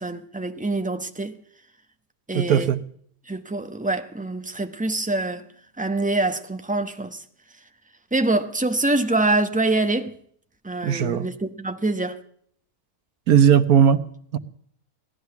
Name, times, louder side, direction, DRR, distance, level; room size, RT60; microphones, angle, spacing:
voice 1, 0.0-1.3 2.3-2.7 3.3-5.5 5.8-7.2 8.1-10.1 10.6-12.2, right 2 dB, 5° right, 0.8 m, -25 dB
voice 2, 2.3-2.8 10.8-11.3 13.3-14.0 14.3-14.4, right 8 dB, 80° right, 1.4 m, -17 dB
17.5 x 12.0 x 7.0 m
omnidirectional pair, 1.5 m